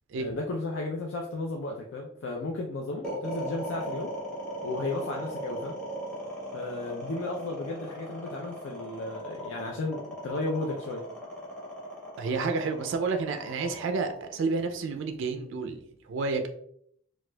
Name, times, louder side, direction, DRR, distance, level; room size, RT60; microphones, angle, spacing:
voice 1, 0.2-4.1 4.6-5.8 6.5-11.0, left 2 dB, 65° left, 0 dB, 0.4 m, -34 dB
sound 1, 3.0-15.3, right 1 dB, 5° left, 1.0 m, -38 dB
voice 2, 12.2-16.5, right 4 dB, 65° right, 6 dB, 0.3 m, -30 dB
4.2 x 2.3 x 2.2 m, 0.67 s
head